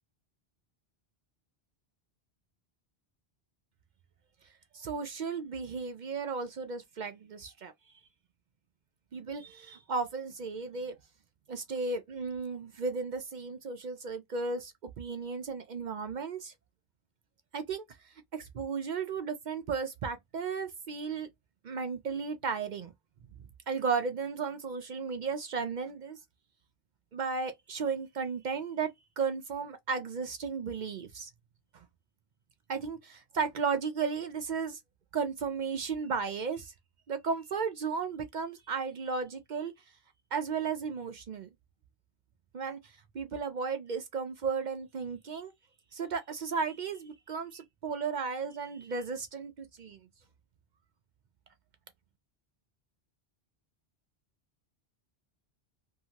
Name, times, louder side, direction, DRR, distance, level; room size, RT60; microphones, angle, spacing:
voice 1, 4.7-7.7 9.1-11.0 11.5-16.5 17.5-17.8 18.3-21.3 21.6-22.9 23.7-26.2 27.1-31.3 31.7-31.8 32.7-34.8 35.1-36.7 37.1-39.7 40.3-41.5 42.5-45.5 45.9-50.0, right 5 dB, 55° right, 0.6 m, -34 dB
2.8 x 2.6 x 2.8 m
omnidirectional pair, 1.1 m